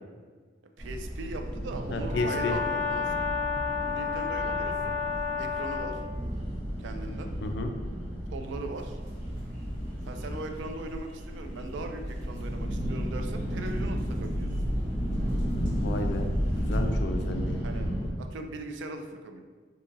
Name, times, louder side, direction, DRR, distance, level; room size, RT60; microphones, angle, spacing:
sound 1, 0.8-18.1, equal, 35° right, 0.9 m, -33 dB
voice 1, 0.8-3.2 3.9-4.9 5.4-6.0 6.8-7.3 8.3-9.0 10.1-14.5 17.6-17.9 18.2-19.4, right 2 dB, 70° right, 5 dB, 0.3 m, -39 dB
voice 2, 1.9-2.5 7.4-7.7 15.8-16.3 16.6-17.6, left 2 dB, 60° left, 5 dB, 0.3 m, -32 dB
Brass instrument, 2.1-6.0, left 5 dB, 10° left, 0.5 m, -31 dB
sound 2, 8.8-17.0, equal, 50° right, 1.4 m, -38 dB
2.7 x 2.5 x 3.8 m, 1.5 s
head